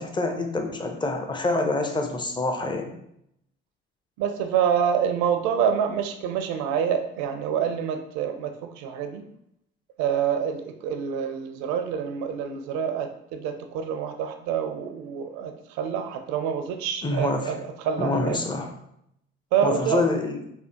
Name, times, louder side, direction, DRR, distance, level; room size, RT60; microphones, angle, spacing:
voice 1, 0.0-2.9 17.0-17.5 18.0-18.7 19.6-20.4, left 2 dB, 15° left, 4 dB, 0.5 m, -26 dB
voice 2, 4.2-9.2 10.0-17.6 17.8-18.4 19.5-20.0, right 8 dB, 65° right, 6 dB, 0.5 m, -27 dB
3.3 x 2.1 x 2.8 m, 0.75 s
hypercardioid pair, 55°, 30 cm